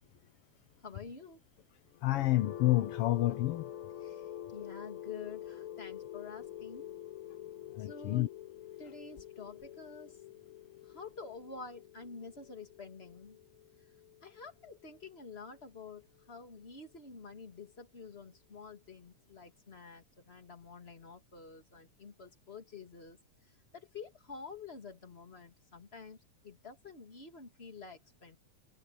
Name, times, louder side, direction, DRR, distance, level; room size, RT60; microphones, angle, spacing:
voice 1, 0.8-1.4 4.0-6.9 7.8-8.3 8.8-10.2 10.8-13.4 14.2-23.2 23.7-26.2 26.4-28.4, left 4 dB, 20° left, 2.6 m, -49 dB
sound 1, 1.9-15.8, left 11 dB, 50° left, 1.9 m, -47 dB
voice 2, 2.0-3.7 7.8-8.3, left 16 dB, 80° left, 1.3 m, -29 dB
omnidirectional pair, 3.4 m